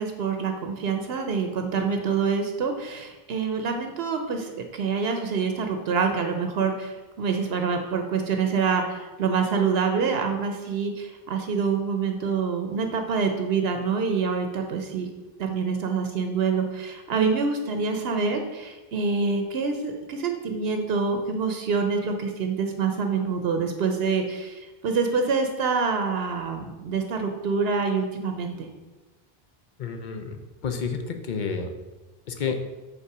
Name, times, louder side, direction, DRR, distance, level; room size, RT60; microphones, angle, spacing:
voice 1, 0.0-15.1 15.4-28.7, right 5 dB, 75° right, 5 dB, 0.9 m, -26 dB
voice 2, 29.8-31.7 32.3-32.6, left 5 dB, 55° left, 6 dB, 0.8 m, -30 dB
5.6 x 4.2 x 5.9 m, 1.2 s
omnidirectional pair, 1.0 m